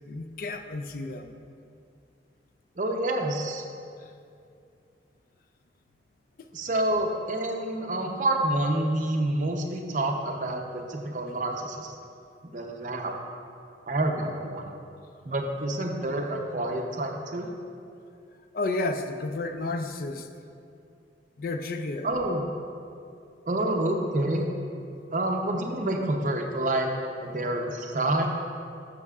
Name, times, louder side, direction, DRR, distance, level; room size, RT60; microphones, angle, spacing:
voice 1, 0.1-1.4 4.0-4.1 18.5-20.3 21.4-22.1, left 2 dB, 50° left, 7 dB, 0.4 m, -31 dB
voice 2, 2.8-3.6 6.5-11.9 12.4-13.1 13.9-14.7 15.2-17.5 22.0-22.4 23.5-24.5 25.1-26.9 27.2-28.3, right 1 dB, 45° right, 2 dB, 0.7 m, -28 dB
10.5 x 6.6 x 2.4 m, 2.5 s
head